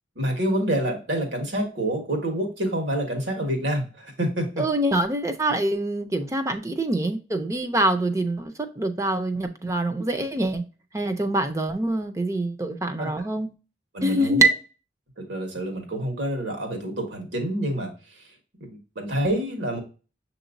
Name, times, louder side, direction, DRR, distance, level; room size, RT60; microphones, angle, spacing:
voice 1, 0.1-4.6 13.0-13.1 13.9-14.5 15.2-17.9 18.6-19.8, right 1 dB, 85° right, 1.5 m, -27 dB
voice 2, 4.6-10.6 10.9-13.5 14.0-14.5, right 2 dB, 15° right, 0.4 m, -25 dB
6.9 x 2.9 x 2.5 m
head